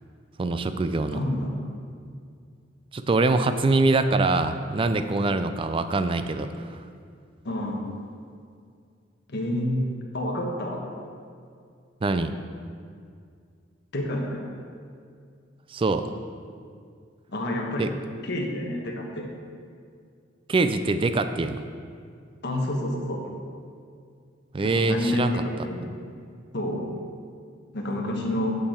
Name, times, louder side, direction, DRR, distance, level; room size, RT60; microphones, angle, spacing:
voice 1, 0.4-1.2 2.9-6.7 12.0-12.3 15.7-16.1 17.8-17.9 20.5-21.6 24.5-25.4, right 3 dB, 30° right, 10 dB, 0.3 m, -24 dB
voice 2, 1.1-1.6 7.4-7.8 9.3-9.8 10.1-10.8 13.9-14.4 17.3-17.8 18.2-19.3 22.4-23.2 24.6-25.9 26.5-26.8 27.7-28.6, left 1 dB, 60° left, 0 dB, 1.2 m, -28 dB
8.7 x 6.6 x 4.4 m, 2.3 s
head